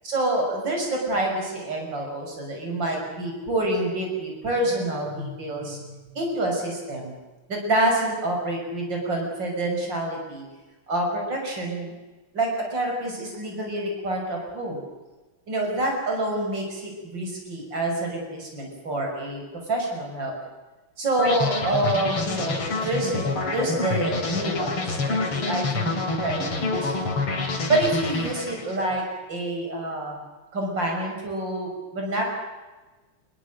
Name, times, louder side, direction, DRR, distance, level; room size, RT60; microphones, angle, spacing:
voice 1, 0.0-7.1 7.5-10.4 10.9-11.9 12.3-14.8 15.5-19.4 19.7-20.3 21.0-26.9 27.7-29.0 29.3-30.2 30.5-32.2, right 1 dB, 55° right, 1 dB, 6.7 m, -27 dB
sound 1, 21.2-28.9, left 3 dB, 85° left, 4.0 m, -27 dB
28.0 x 21.5 x 6.4 m, 1.2 s
omnidirectional pair, 2.4 m